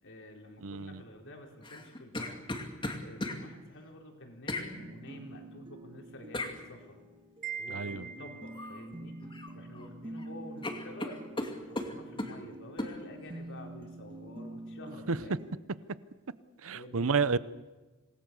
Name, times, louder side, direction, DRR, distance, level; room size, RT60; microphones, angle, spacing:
voice 1, 0.0-2.5 3.0-7.0 7.6-9.2 9.5-15.4 16.7-17.1, left 1 dB, 60° left, 2 dB, 4.3 m, -49 dB
voice 2, 0.6-1.0 7.7-8.1 15.1-15.2 16.6-17.4, right 5 dB, 70° right, 16 dB, 0.8 m, -30 dB
Wounded coughing, 1.6-3.4 4.5-4.7 6.3-6.6 8.5-8.8 9.2-9.9 10.2-10.3 10.6-12.4 12.8-13.0, left 1 dB, 25° left, 2.5 m, -36 dB
sound 1, 4.7-15.5, right 1 dB, 25° right, 1.5 m, -47 dB
Wind chime, 7.4-8.8, right 7 dB, 40° right, 2.8 m, -41 dB
26.5 x 19.5 x 6.9 m, 1.2 s
head